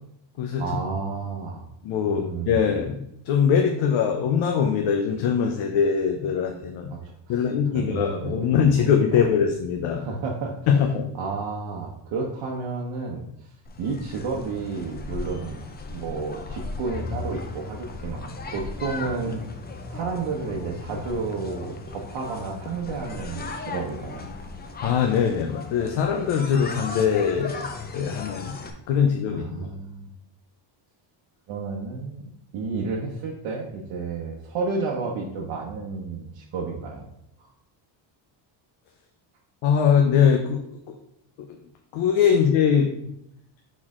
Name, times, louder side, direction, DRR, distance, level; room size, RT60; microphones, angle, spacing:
voice 1, 0.6-1.6 2.0-2.8 6.9-7.5 7.7-8.5 8.8-8.9 9.9-10.5 11.1-13.2 13.8-15.6 15.9-19.5 19.9-24.2 29.3-30.1 31.5-32.2 32.5-37.1 37.4-37.5, right 4 dB, 65° right, -3 dB, 1.1 m, -31 dB
voice 2, 1.8-6.9 7.3-10.0 10.7-11.1 24.8-27.7 27.9-28.6 28.9-29.7 39.6-40.6 41.9-43.1, left 7 dB, 70° left, 3 dB, 0.8 m, -22 dB
sound 1, 13.6-28.7, left 3 dB, 20° left, 0.4 m, -36 dB
6.2 x 4.2 x 3.7 m, 0.77 s
cardioid pair, 155°, 49 cm